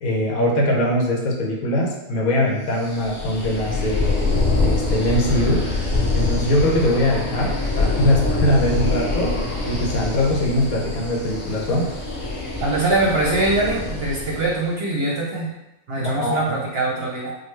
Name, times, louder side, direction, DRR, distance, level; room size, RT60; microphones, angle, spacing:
voice 1, 0.0-4.2 4.6-5.7 6.1-9.3 9.6-11.9 16.0-16.6, left 1 dB, 70° left, -1 dB, 1.2 m, -21 dB
sound 1, 2.8-14.6, left 3 dB, 40° left, 0.8 m, -24 dB
voice 2, 12.6-15.6 15.9-17.3, right 2 dB, 55° right, -3 dB, 0.8 m, -22 dB
5.1 x 2.1 x 3.1 m, 0.93 s
omnidirectional pair, 1.6 m